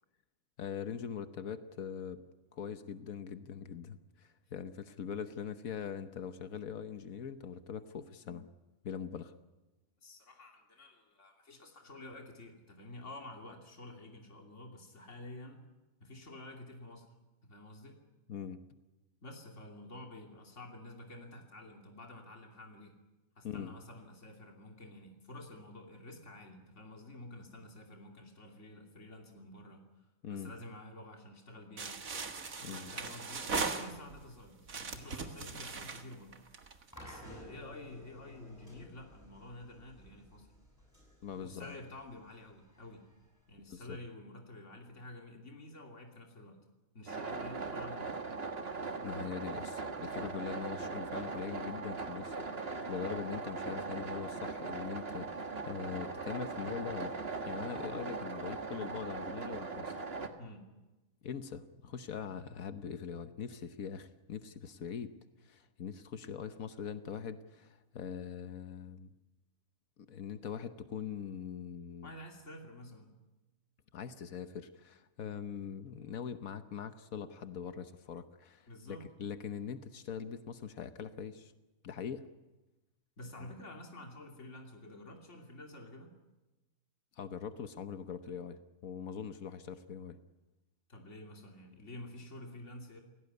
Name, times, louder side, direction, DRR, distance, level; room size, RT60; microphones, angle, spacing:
voice 1, 0.6-2.2 2.5-8.5 8.8-9.3 18.3-18.6 23.4-23.7 30.2-30.5 32.6-32.9 41.2-41.8 43.7-44.0 49.0-57.1 57.5-60.0 61.2-65.1 65.4-69.1 70.0-72.1 73.9-81.5 81.8-82.2 83.4-83.5 87.2-90.2, left 7 dB, 85° left, 10 dB, 1.5 m, -42 dB
voice 2, 10.0-15.6 16.0-17.1 17.4-18.0 19.2-23.0 23.4-32.0 32.3-36.4 37.0-40.5 41.4-43.1 43.5-46.6 46.9-48.2 60.4-60.7 72.0-73.2 78.7-79.1 83.2-86.2 90.9-93.0, left 1 dB, 60° left, 2 dB, 3.1 m, -50 dB
sound 1, 31.8-34.3 34.7-36.9, right 4 dB, 80° right, 2.2 m, -39 dB
sound 2, 36.9-44.0, left 1 dB, 10° left, 8.1 m, -54 dB
sound 3, 47.1-60.3, right 4 dB, 45° right, 1.9 m, -40 dB
29.5 x 17.5 x 9.6 m, 1.1 s
omnidirectional pair, 1.4 m